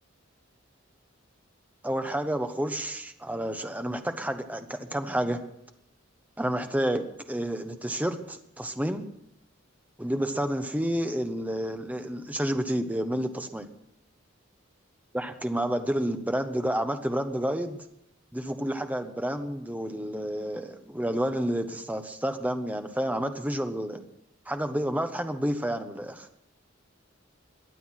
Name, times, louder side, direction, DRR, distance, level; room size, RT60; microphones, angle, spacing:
voice 1, 1.8-5.4 6.4-9.0 10.0-13.7 15.1-17.8 18.3-24.0 24.5-26.3, right 1 dB, 10° right, 7 dB, 1.2 m, -30 dB
22.5 x 8.4 x 5.9 m, 0.81 s
head